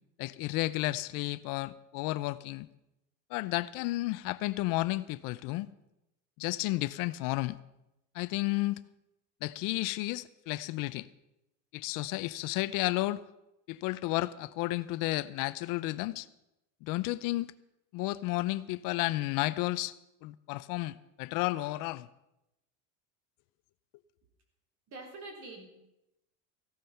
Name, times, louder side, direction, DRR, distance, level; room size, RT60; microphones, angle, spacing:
voice 1, 0.2-2.7 3.3-5.7 6.4-7.6 8.1-8.8 9.4-11.1 11.7-13.2 13.7-16.3 16.8-17.5 17.9-19.9 20.2-22.1, left 19 dB, 50° left, 16 dB, 0.6 m, -32 dB
voice 2, 24.9-25.7, right 2 dB, 45° right, 3 dB, 3.7 m, -45 dB
15.5 x 12.0 x 5.7 m, 0.89 s
supercardioid pair, 145°, 42 cm